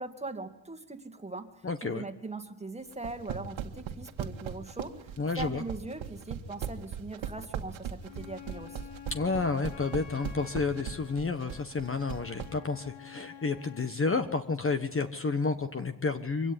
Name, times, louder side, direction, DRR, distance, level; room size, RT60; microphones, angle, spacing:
voice 1, 0.0-8.9, right 3 dB, 15° right, 7 dB, 2.1 m, -41 dB
voice 2, 1.6-2.0 5.2-5.6 9.1-16.5, left 4 dB, 30° left, 9 dB, 1.3 m, -30 dB
sound 1, 2.9-12.5, right 9 dB, 85° right, 2.0 m, -37 dB
Wind instrument woodwind instrument, 8.0-14.0, left 9 dB, 80° left, 2.5 m, -49 dB
23.5 x 17.0 x 9.8 m, 0.83 s
cardioid pair, 110°, 46 cm